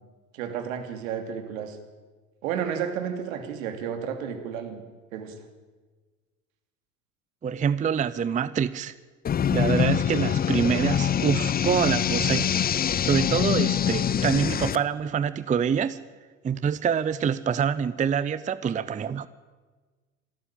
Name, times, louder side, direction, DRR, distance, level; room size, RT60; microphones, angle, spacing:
voice 1, 0.3-1.8 2.4-4.8 5.1-5.4, right 8 dB, 65° right, 7 dB, 2.9 m, -32 dB
voice 2, 7.4-9.0 9.5-12.5 13.0-16.0 16.4-19.3, right 7 dB, 20° right, 16 dB, 0.6 m, -26 dB
sound 1, 9.2-14.8, left 8 dB, 20° left, 0.7 m, -24 dB
26.5 x 12.5 x 8.9 m, 1.4 s
figure-of-eight pair, 70°, 43 cm